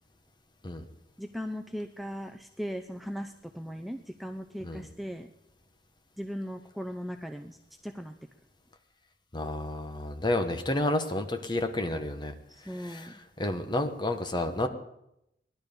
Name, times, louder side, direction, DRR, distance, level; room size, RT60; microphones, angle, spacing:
voice 1, 1.2-5.3 6.2-7.6 7.8-8.1 12.5-13.2, equal, ahead, 5 dB, 0.5 m, -38 dB
voice 2, 9.3-12.3 12.7-14.7, left 1 dB, 25° left, 6 dB, 1.2 m, -31 dB
19.0 x 11.5 x 5.2 m, 0.83 s
head